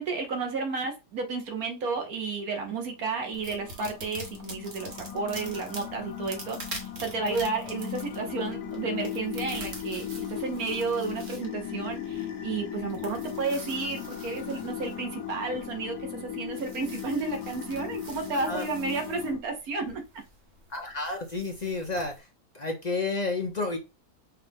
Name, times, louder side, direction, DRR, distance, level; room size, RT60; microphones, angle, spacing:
voice 1, 0.0-20.2, right 4 dB, 75° right, 4 dB, 1.5 m, -32 dB
sound 1, 2.6-19.4, left 9 dB, 85° left, 1.4 m, -38 dB
sound 2, 3.3-22.2, right 2 dB, 50° right, 1.3 m, -46 dB
voice 2, 20.7-22.3 22.5-23.8, left 3 dB, 40° left, 3 dB, 0.6 m, -31 dB
5.7 x 2.6 x 3.5 m, 0.27 s
omnidirectional pair, 1.6 m